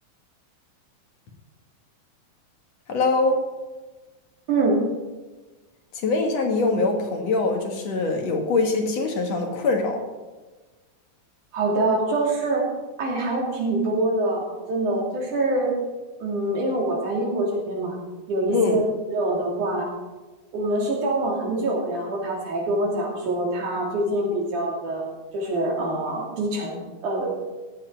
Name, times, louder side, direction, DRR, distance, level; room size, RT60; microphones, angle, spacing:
voice 1, 2.9-3.4 5.9-10.0 18.5-18.8, left 3 dB, 60° left, 2 dB, 2.6 m, -23 dB
voice 2, 4.5-4.8 11.5-12.6 13.0-15.7 16.2-17.9 18.3-18.8 19.1-19.9 20.5-25.0 25.3-27.3, right 2 dB, 80° right, -2 dB, 4.4 m, -25 dB
15.5 x 10.0 x 4.5 m, 1.2 s
omnidirectional pair, 3.5 m